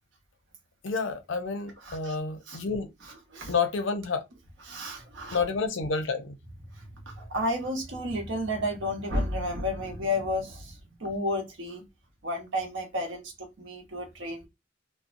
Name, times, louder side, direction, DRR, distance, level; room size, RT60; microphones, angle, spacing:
voice 1, 0.8-2.9 3.5-4.3 5.3-6.4, left 4 dB, 85° left, 0.5 m, -29 dB
voice 2, 1.8-2.1 2.5-2.6 3.0-3.5 4.6-5.4 6.7-11.8 12.2-14.5, left 1 dB, 75° right, 0.9 m, -32 dB
2.6 x 2.0 x 2.5 m
head